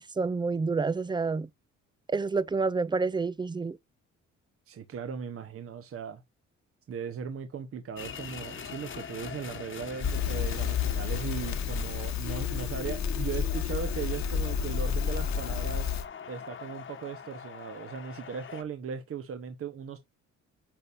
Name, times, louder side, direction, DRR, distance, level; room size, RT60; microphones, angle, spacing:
voice 1, 0.0-1.5 2.1-3.8, right 4 dB, 15° right, 0.5 m, -28 dB
voice 2, 4.7-6.2 6.9-15.9 16.3-20.0, right 6 dB, 50° right, 1.1 m, -38 dB
sound 1, 8.0-18.6, left 7 dB, 40° left, 1.3 m, -42 dB
Crackle, 10.0-16.1, left 7 dB, 65° left, 1.4 m, -30 dB
8.9 x 5.4 x 2.5 m
cardioid pair, 90°, 30 cm